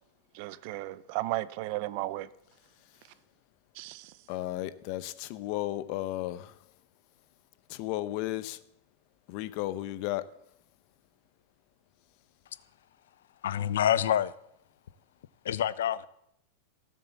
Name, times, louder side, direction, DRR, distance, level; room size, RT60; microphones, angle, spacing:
voice 1, 0.3-2.3 3.7-4.1, right 18 dB, 45° right, 0.6 m, -34 dB
voice 2, 4.3-6.5 7.7-8.6 9.3-10.2, left 15 dB, 45° left, 0.9 m, -34 dB
voice 3, 13.4-14.3 15.4-16.1, left 10 dB, 85° left, 0.7 m, -27 dB
17.0 x 7.5 x 7.1 m
supercardioid pair, 155°, 0 cm